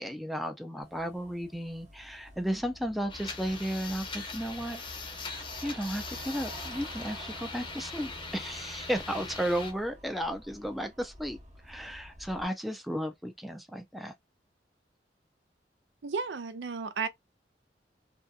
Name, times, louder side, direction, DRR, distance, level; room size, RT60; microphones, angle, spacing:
voice 1, 0.0-4.8 5.6-11.4 11.6-14.1, equal, ahead, 0.4 m, -34 dB
sound 1, 0.8-12.4, right 1 dB, 45° right, 0.9 m, -50 dB
sound 2, 3.1-9.7, left 3 dB, 30° left, 0.7 m, -41 dB
voice 2, 16.0-17.1, right 5 dB, 85° right, 0.5 m, -33 dB
2.7 x 2.4 x 2.2 m
head